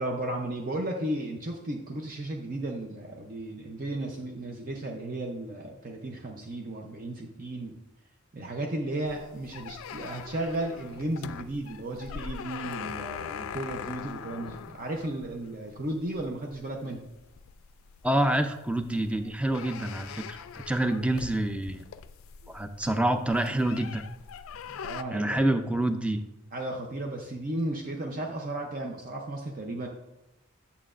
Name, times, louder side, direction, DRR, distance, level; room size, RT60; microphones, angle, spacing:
voice 1, 0.0-7.8 8.3-17.0 24.6-25.4 26.5-29.9, right 1 dB, 45° right, 1 dB, 0.6 m, -34 dB
sound 1, 9.0-25.0, left 7 dB, 85° left, 0.3 m, -42 dB
voice 2, 18.0-21.8 22.5-24.0 25.1-26.2, right 1 dB, 5° right, 8 dB, 0.4 m, -27 dB
8.8 x 7.0 x 2.5 m, 0.92 s
head